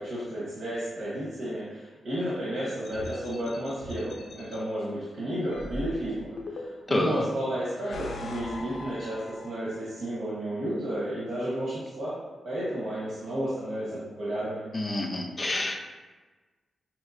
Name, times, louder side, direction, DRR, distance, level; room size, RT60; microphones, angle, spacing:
voice 1, 0.0-6.6 6.9-12.2 12.4-14.7, right 1 dB, 80° right, -9 dB, 1.0 m, -32 dB
sound 1, 2.8-4.6 5.5-7.0 7.6-9.8, left 1 dB, 70° left, 0.6 m, -40 dB
voice 2, 6.9-7.2 14.7-15.8, left 1 dB, 30° left, 2 dB, 0.5 m, -28 dB
5.4 x 3.0 x 2.5 m, 1.3 s
cardioid pair, 100°, 0 cm